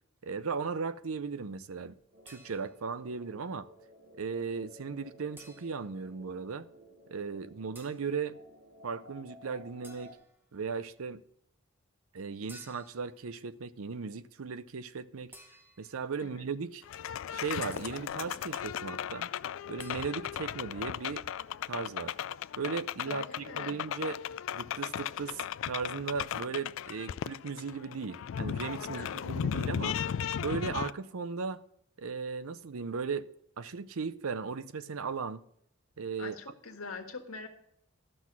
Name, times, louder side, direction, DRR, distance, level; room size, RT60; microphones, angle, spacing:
voice 1, 0.2-2.0 2.3-3.7 4.2-6.7 7.1-8.4 8.8-10.2 10.5-11.2 12.1-15.3 15.8-16.8 17.3-19.3 19.7-21.3 21.7-22.2 22.6-24.2 24.5-30.0 30.4-31.6 32.0-33.3 33.6-35.4 36.0-36.4, right 5 dB, 80° right, 0.6 m, -37 dB
sound 1, 2.1-10.1, equal, 50° right, 1.9 m, -55 dB
sound 2, 2.3-3.0 5.4-6.0 7.7-8.1 9.8-10.4 12.5-13.1 15.3-16.0 17.7-18.2 19.8-20.1, right 1 dB, 10° right, 0.8 m, -55 dB
sound 3, 16.8-30.9, left 9 dB, 65° left, 0.3 m, -36 dB
voice 2, 23.1-23.8 28.9-29.2 36.2-37.5, left 4 dB, 80° left, 1.6 m, -43 dB
12.5 x 6.2 x 6.0 m
head